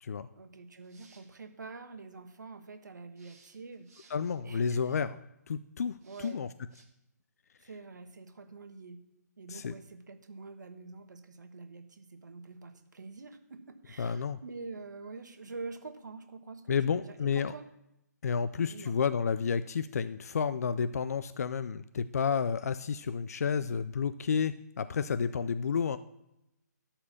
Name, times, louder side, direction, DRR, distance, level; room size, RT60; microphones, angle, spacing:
voice 1, 0.3-3.9 4.4-5.1 6.0-6.4 7.6-9.0 9.4-17.7 18.7-18.9, right 4 dB, 85° right, 6 dB, 1.3 m, -46 dB
sound 1, 0.7-1.4 3.2-4.4 6.0-6.3 6.7-6.8, right 4 dB, 55° right, 3.3 m, -61 dB
voice 2, 4.1-5.1 5.5-6.5 9.5-9.7 14.0-14.4 16.7-17.5 18.2-26.0, left 6 dB, 60° left, 13 dB, 0.4 m, -31 dB
12.5 x 4.3 x 7.1 m, 0.87 s
hypercardioid pair, 165°, 10 cm